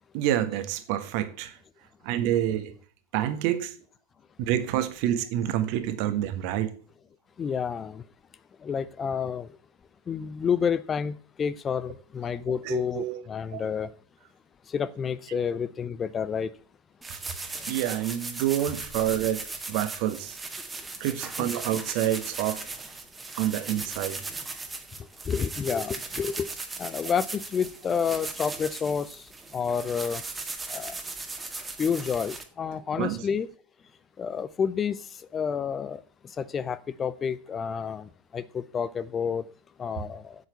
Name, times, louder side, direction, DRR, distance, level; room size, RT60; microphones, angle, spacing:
voice 1, 0.1-1.6 2.0-2.7 3.1-3.8 4.4-6.7 12.6-13.2 13.5-13.7 15.3-15.4 17.1-17.2 17.7-20.4 21.0-22.6 23.3-24.2 33.0-33.3, right 12 dB, 45° right, 1.5 m, -28 dB
voice 2, 7.4-8.0 8.6-9.5 10.1-11.1 11.4-13.9 14.7-16.5 21.4-21.5 25.3-26.5 26.8-29.1 29.5-30.2 30.7-30.9 31.8-33.5 34.2-35.0 35.3-36.0 36.4-38.0 38.3-39.4 39.8-40.4, left 7 dB, 20° left, 0.6 m, -29 dB
sound 1, 17.0-32.4, right 3 dB, 10° right, 1.7 m, -38 dB
8.1 x 8.1 x 8.2 m
figure-of-eight pair, 90°, 0 cm